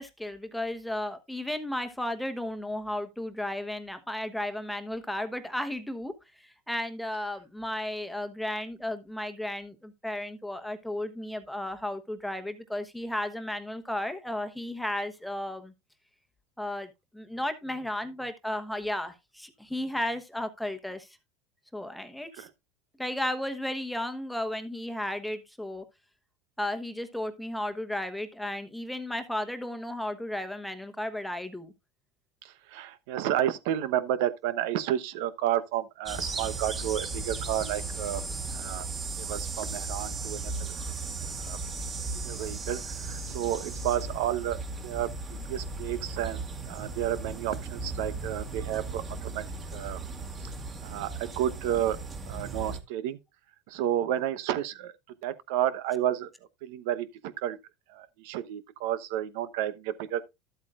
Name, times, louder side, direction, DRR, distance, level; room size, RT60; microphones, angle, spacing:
voice 1, 0.0-6.1 6.4-15.7 16.6-21.1 21.7-22.5 23.0-25.8 26.6-31.7, left 1 dB, ahead, 1.1 m, -34 dB
voice 2, 32.4-38.2 38.5-38.9 39.2-40.7 41.4-41.6 42.2-46.4 46.7-49.4 49.7-50.0 50.8-52.0 52.3-53.2 53.7-54.9 55.2-56.3 56.6-57.6 57.9-60.2, right 11 dB, 70° right, 0.9 m, -31 dB
sound 1, 36.0-52.8, right 3 dB, 25° right, 2.2 m, -36 dB
12.0 x 8.2 x 2.5 m
supercardioid pair, 130°, 0 cm